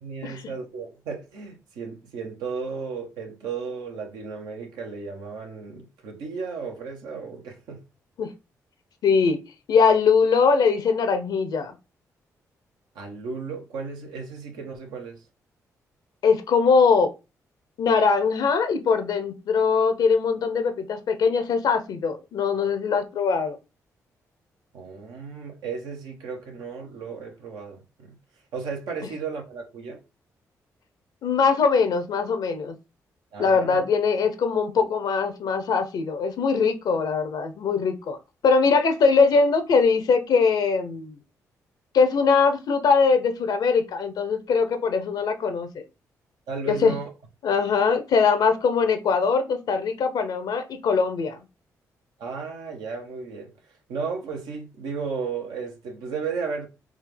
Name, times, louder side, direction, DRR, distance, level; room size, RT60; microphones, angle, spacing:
voice 1, 0.0-7.8 12.9-15.2 24.7-28.2 28.5-30.0 33.3-33.8 46.5-47.1 52.2-53.5 53.9-56.7, right 5 dB, 80° right, 0.9 m, -34 dB
voice 2, 9.0-9.4 9.7-11.7 16.2-17.1 17.8-23.6 31.2-32.7 33.4-38.2 38.4-41.2 41.9-45.8 46.7-46.9 47.4-51.4, left 5 dB, 70° left, 0.6 m, -21 dB
3.6 x 2.4 x 3.3 m
supercardioid pair, 50°, 7 cm